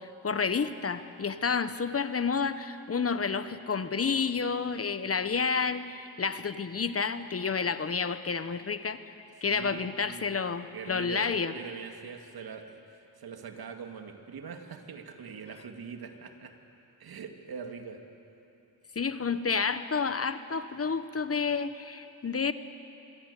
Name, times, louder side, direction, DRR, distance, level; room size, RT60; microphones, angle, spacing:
voice 1, 0.0-9.0 9.4-11.5 18.9-22.5, left 5 dB, 35° left, 12 dB, 1.1 m, -30 dB
voice 2, 9.4-12.8 13.2-16.5 17.0-18.0, right 6 dB, 70° right, 5 dB, 2.4 m, -43 dB
26.0 x 22.0 x 8.4 m, 2.9 s
cardioid pair, 75°, 38 cm